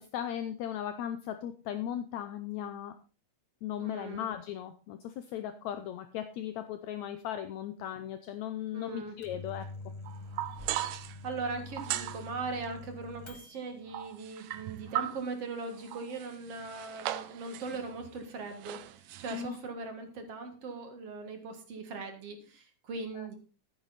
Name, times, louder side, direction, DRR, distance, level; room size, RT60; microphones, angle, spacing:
voice 1, 0.0-2.9 3.6-9.7 19.3-19.6 23.1-23.3, left 10 dB, 75° left, 10 dB, 1.9 m, -37 dB
voice 2, 3.8-4.3 8.7-9.2 11.2-18.8 19.2-23.4, right 3 dB, 55° right, 6 dB, 2.6 m, -39 dB
Microwave oven, 9.0-13.8, left 2 dB, 30° left, 0.4 m, -46 dB
sound 1, 10.1-11.2 11.7-12.3 13.9-15.3 15.7-18.3 18.5-19.4, right 13 dB, 85° right, 2.3 m, -38 dB
12.5 x 9.4 x 4.1 m, 0.35 s
omnidirectional pair, 3.6 m